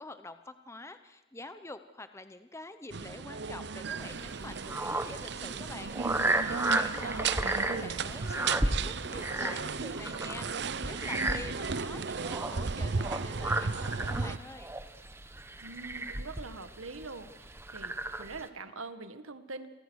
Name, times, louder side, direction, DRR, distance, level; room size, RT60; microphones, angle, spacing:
voice 1, 0.0-14.7, left 2 dB, 15° left, 10 dB, 0.8 m, -47 dB
sound 1, 2.9-14.4, right 5 dB, 55° right, 0.7 m, -35 dB
sound 2, 4.0-18.5, right 2 dB, 10° right, 1.1 m, -34 dB
voice 2, 6.9-7.9 15.6-19.7, right 3 dB, 90° right, 11 dB, 1.7 m, -43 dB
29.5 x 23.5 x 6.4 m, 1.1 s
head